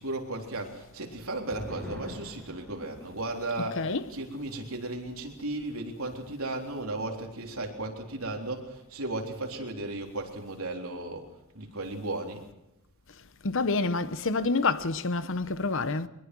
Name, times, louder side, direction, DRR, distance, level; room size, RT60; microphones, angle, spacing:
voice 1, 0.0-11.3 11.5-12.4, right 2 dB, 75° right, 3.7 m, -35 dB
sound 1, 0.9-7.8 8.1-8.2 8.6-9.1, left 1 dB, 5° left, 6.7 m, -48 dB
voice 2, 3.6-4.2 13.4-16.1, left 3 dB, 65° left, 1.0 m, -28 dB
23.0 x 21.0 x 6.2 m
head